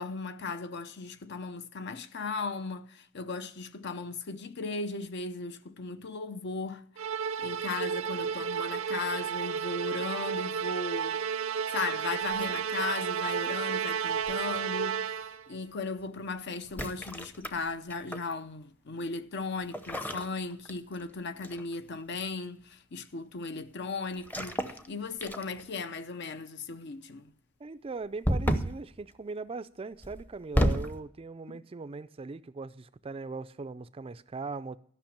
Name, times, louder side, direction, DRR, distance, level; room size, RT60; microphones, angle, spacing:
voice 1, 0.0-6.9 7.4-11.2 11.7-27.3 31.5-31.6, left 4 dB, 55° left, 0.7 m, -37 dB
Musical instrument, 7.0-15.5, right 7 dB, 80° right, 0.6 m, -32 dB
sound 1, 12.3-13.1 14.3-14.6 16.6-18.3 19.7-21.1 21.4-21.7 24.2-24.9 25.2-25.8 28.2-28.8 30.0-31.0, equal, 10° left, 0.7 m, -31 dB
voice 2, 27.6-34.8, right 4 dB, 30° right, 0.4 m, -40 dB
13.0 x 6.0 x 8.5 m
head